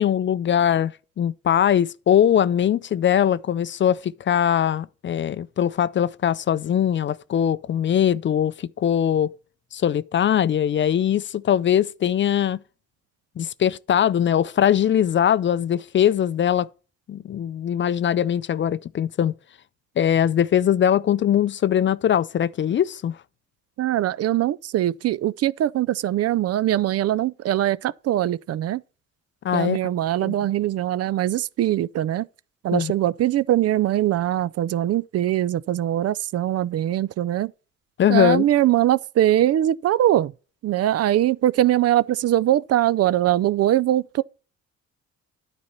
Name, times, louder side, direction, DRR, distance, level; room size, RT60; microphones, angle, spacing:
voice 1, 0.0-9.4 9.7-12.6 13.4-16.7 17.1-19.3 20.0-23.2 29.4-29.8 30.2-30.4 32.7-32.9 38.0-38.5, left 9 dB, 40° left, 0.4 m, -21 dB
voice 2, 23.8-28.8 29.5-32.3 32.6-37.5 38.1-40.3 40.6-44.2, right 13 dB, 55° right, 0.4 m, -22 dB
9.6 x 4.2 x 5.7 m
cardioid pair, 90°, 30 cm